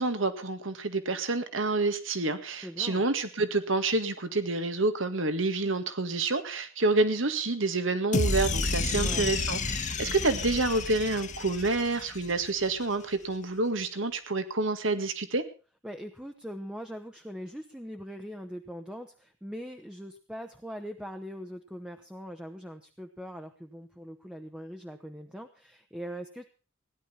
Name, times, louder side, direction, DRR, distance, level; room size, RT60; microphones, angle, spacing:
voice 1, 0.0-15.4, right 3 dB, 70° right, 10 dB, 1.8 m, -28 dB
voice 2, 2.6-3.0 8.9-9.3 15.8-26.5, equal, 5° right, 4 dB, 1.1 m, -41 dB
sound 1, 8.1-12.5, left 3 dB, 40° left, 1.4 m, -30 dB
17.0 x 11.0 x 5.7 m, 0.35 s
head